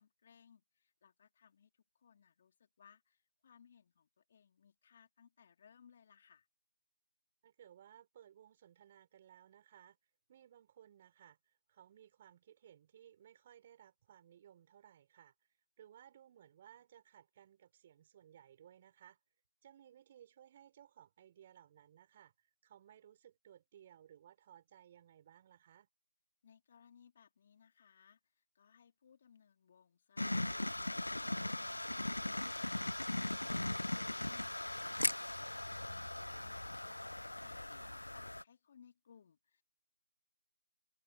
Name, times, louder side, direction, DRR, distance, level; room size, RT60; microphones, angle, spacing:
voice 1, 0.0-6.5 26.4-39.6, left 7 dB, 25° left, 3.3 m, -65 dB
voice 2, 7.4-10.0 10.3-15.3 15.8-19.2 19.6-25.9 37.8-37.9, right 10 dB, 20° right, 6.1 m, -61 dB
sound 1, 30.2-38.4, left 1 dB, 80° left, 0.3 m, -39 dB
figure-of-eight pair, 165°, 0 cm